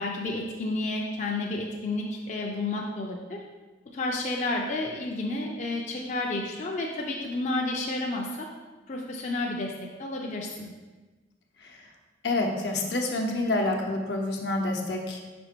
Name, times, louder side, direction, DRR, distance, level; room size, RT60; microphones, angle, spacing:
voice 1, 0.0-3.4 3.9-8.5 8.9-10.7, left 2 dB, 45° left, -2 dB, 0.6 m, -31 dB
voice 2, 12.2-15.2, left 2 dB, 75° left, 1 dB, 0.9 m, -27 dB
5.3 x 5.0 x 4.5 m, 1.3 s
head